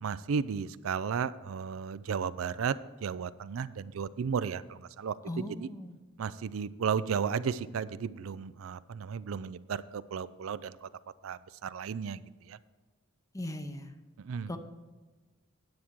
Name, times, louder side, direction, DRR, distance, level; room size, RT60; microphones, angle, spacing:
voice 1, 0.0-2.7 3.0-5.7 6.2-10.9 11.2-12.2 12.5-12.6 14.2-14.5, right 6 dB, 85° right, 14 dB, 0.4 m, -34 dB
voice 2, 5.3-6.0 13.3-13.9 14.5-14.6, left 1 dB, 15° left, 7 dB, 0.7 m, -38 dB
9.5 x 8.5 x 4.6 m, 1.3 s
head